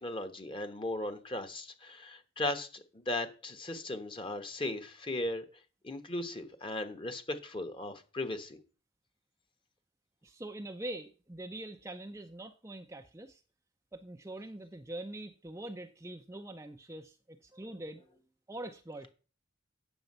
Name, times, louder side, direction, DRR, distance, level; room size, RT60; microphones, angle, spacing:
voice 1, 0.0-5.4 5.8-8.6, left 2 dB, 25° left, 8 dB, 1.2 m, -37 dB
voice 2, 10.2-13.4 13.9-18.1 18.5-19.1, right 1 dB, 15° right, 5 dB, 0.6 m, -44 dB
9.1 x 7.0 x 5.5 m, 0.36 s
head